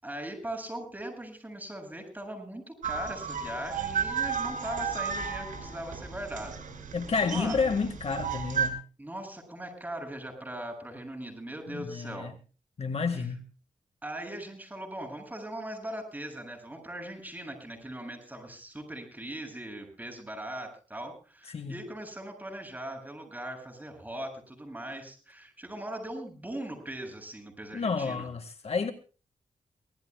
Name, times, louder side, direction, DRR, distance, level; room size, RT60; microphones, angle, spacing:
voice 1, 0.0-6.6 7.2-7.6 9.0-12.3 13.1-13.3 14.0-28.3, right 1 dB, 10° right, 7.9 m, -40 dB
sound 1, 2.8-8.7, right 6 dB, 85° right, 5.8 m, -33 dB
voice 2, 6.9-8.8 11.7-12.3 12.8-13.4 21.5-21.8 27.7-28.9, left 5 dB, 50° left, 1.9 m, -30 dB
25.0 x 18.5 x 2.3 m
wide cardioid pair, 105°, 13 cm